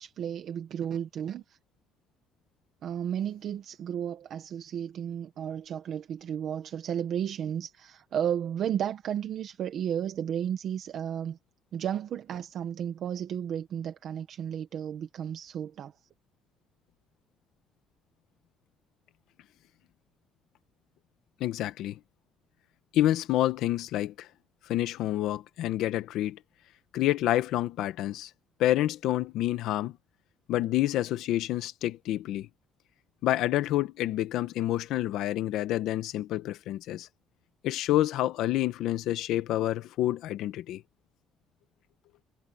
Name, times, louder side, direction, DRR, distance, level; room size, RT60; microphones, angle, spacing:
voice 1, 0.0-1.6 2.8-11.4 11.7-15.9, right 9 dB, 45° right, 1.2 m, -33 dB
voice 2, 21.4-22.0 22.9-24.3 24.7-26.4 26.9-28.3 28.6-29.9 30.5-32.5 33.2-37.1 37.6-40.8, left 14 dB, 65° left, 1.4 m, -28 dB
cardioid pair, 175°, 0 cm